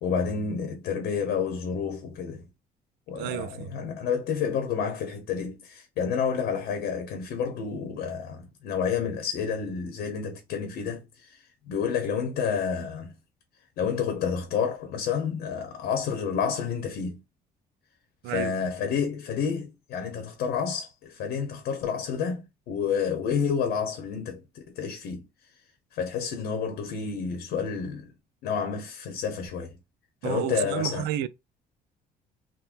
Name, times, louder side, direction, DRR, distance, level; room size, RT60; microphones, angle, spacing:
voice 1, 0.0-2.4 3.1-13.1 13.8-17.2 18.3-25.2 25.9-28.1 28.4-29.7 30.2-31.0, left 6 dB, 75° left, 0.9 m, -30 dB
voice 2, 3.1-3.7 18.2-18.6 30.2-31.3, right 12 dB, 90° right, 0.4 m, -31 dB
3.7 x 2.2 x 2.5 m
cardioid pair, 110°, 17 cm